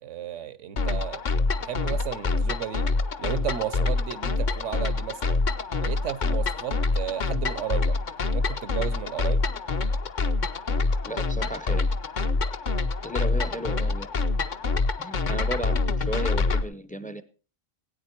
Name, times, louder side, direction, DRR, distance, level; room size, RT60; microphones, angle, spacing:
voice 1, 0.0-1.2 1.6-2.9 3.2-5.4 5.8-8.0 8.3-9.4, right 10 dB, 75° right, 1.1 m, -33 dB
sound 1, 0.8-16.6, left 3 dB, 45° left, 0.8 m, -26 dB
voice 2, 11.1-11.8 13.0-14.1 15.0-17.2, right 1 dB, 10° left, 0.5 m, -34 dB
18.0 x 9.1 x 4.5 m
omnidirectional pair, 1.3 m